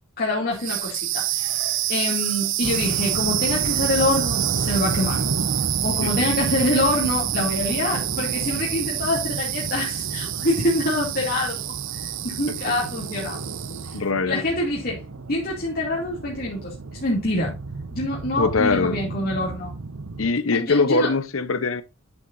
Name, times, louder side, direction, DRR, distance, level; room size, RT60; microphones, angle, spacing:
voice 1, 0.2-1.5 1.9-5.2 5.8-11.7 12.2-13.5 14.3-15.0 15.3-17.5 17.9-19.7 20.5-21.1, left 1 dB, 45° left, 2.5 m, -25 dB
sound 1, 0.5-14.1, right 15 dB, 60° right, 0.6 m, -27 dB
sound 2, 2.6-20.3, right 3 dB, 85° right, 0.9 m, -32 dB
voice 2, 6.0-6.5 13.7-14.4 18.4-19.0 20.2-21.8, left 4 dB, 70° left, 0.9 m, -23 dB
9.9 x 8.0 x 2.6 m
head